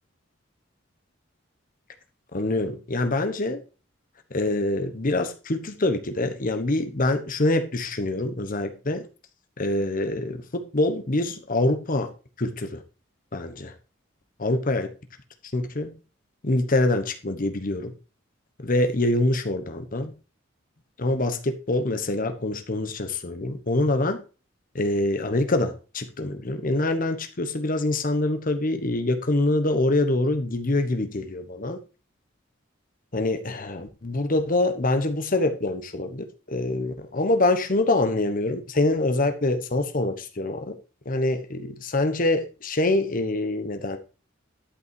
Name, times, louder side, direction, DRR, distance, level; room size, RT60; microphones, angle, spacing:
voice 1, 2.3-3.6 4.3-9.0 9.6-12.1 12.4-12.8 13.3-13.7 14.4-14.9 15.5-15.9 16.4-17.9 18.6-20.1 21.0-24.2 24.7-31.8 33.1-40.7 41.1-44.0, left 2 dB, 45° left, 1.1 m, -25 dB
11.5 x 5.5 x 4.6 m
head